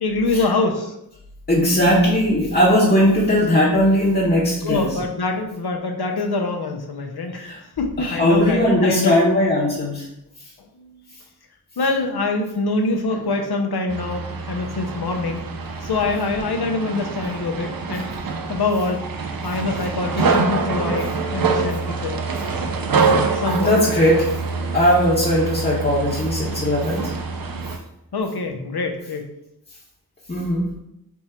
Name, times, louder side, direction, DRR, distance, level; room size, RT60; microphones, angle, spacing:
voice 1, 0.0-0.9 4.6-7.4 7.8-9.2 10.8-11.0 11.8-15.4 15.8-18.1 18.5-19.1 19.4-22.2 23.3-24.0 28.1-29.3, left 3 dB, 80° left, 4 dB, 0.7 m, -24 dB
voice 2, 1.5-4.9 7.3-7.6 8.0-10.1 23.5-24.3 24.7-27.1 30.3-30.7, equal, 25° left, -7 dB, 0.9 m, -18 dB
sound 1, 13.9-27.8, right 4 dB, 65° right, 0.5 m, -25 dB
3.5 x 2.9 x 4.3 m, 0.82 s
wide cardioid pair, 55°, 37 cm